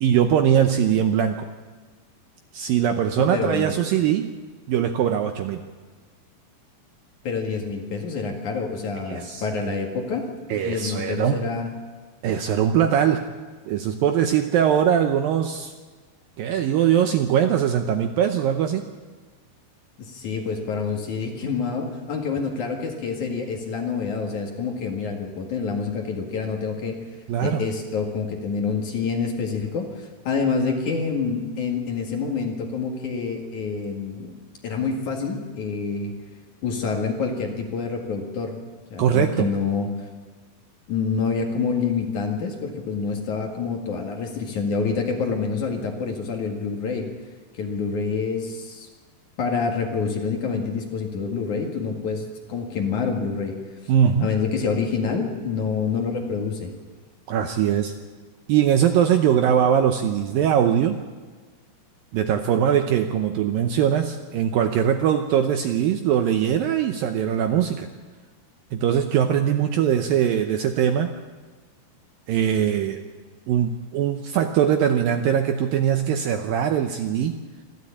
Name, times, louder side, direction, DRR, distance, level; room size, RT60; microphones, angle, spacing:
voice 1, 0.0-1.5 2.5-4.3 4.7-5.6 9.1-9.7 10.5-11.5 12.2-13.3 13.7-15.7 16.4-18.8 27.3-27.6 39.0-39.5 53.9-54.3 57.3-57.9 58.5-61.0 62.1-67.9 68.7-71.1 72.3-73.0 73.5-77.3, right 9 dB, 75° right, 6 dB, 2.2 m, -21 dB
voice 2, 3.2-3.7 7.2-11.7 20.0-27.0 27.4-34.4 34.6-36.1 36.6-38.6 38.9-40.1 40.9-47.1 47.5-48.9 49.4-53.6 54.2-56.7, left 5 dB, 55° left, 2 dB, 3.0 m, -27 dB
25.5 x 13.0 x 8.6 m, 1.4 s
omnidirectional pair, 4.9 m